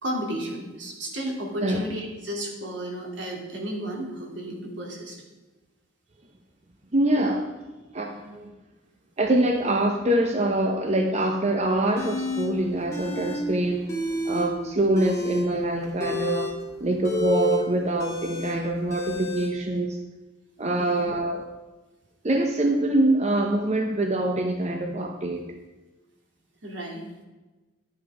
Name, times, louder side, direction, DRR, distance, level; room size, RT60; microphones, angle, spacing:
voice 1, 0.0-5.2 20.8-21.1 26.6-27.1, right 1 dB, 75° right, 0 dB, 2.6 m, -33 dB
voice 2, 6.9-7.5 7.9-8.5 9.2-13.8 14.3-16.5 16.8-20.0 20.6-21.5 22.2-25.5, right 1 dB, 35° right, 3 dB, 0.9 m, -24 dB
sound 1, 12.0-12.5 12.9-13.4 13.7-14.5 14.9-19.5, left 2 dB, 15° left, 2.1 m, -30 dB
11.5 x 8.7 x 4.8 m, 1.2 s
head